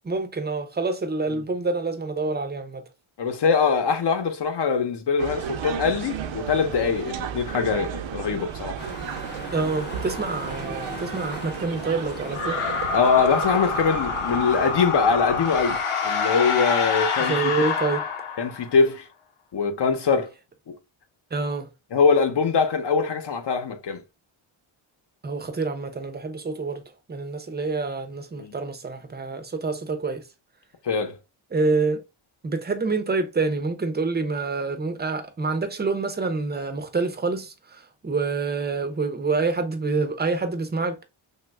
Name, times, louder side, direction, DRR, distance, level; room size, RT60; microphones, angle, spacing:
voice 1, 0.0-2.8 9.5-12.6 17.3-18.0 21.3-21.7 25.2-26.8 27.1-30.2 31.5-32.0 32.4-41.0, right 3 dB, 20° right, 0.5 m, -27 dB
voice 2, 3.2-8.8 12.9-15.8 16.0-17.5 18.4-19.0 19.5-20.3 21.9-24.0 28.4-28.5 30.8-31.2, left 5 dB, 55° left, 0.8 m, -23 dB
sound 1, 5.2-15.8, right 9 dB, 65° right, 0.6 m, -35 dB
sound 2, 8.8-14.7, left 2 dB, 20° left, 0.7 m, -39 dB
sound 3, 12.3-18.8, left 5 dB, 90° left, 0.8 m, -26 dB
3.0 x 2.3 x 3.3 m
wide cardioid pair, 115°, 50 cm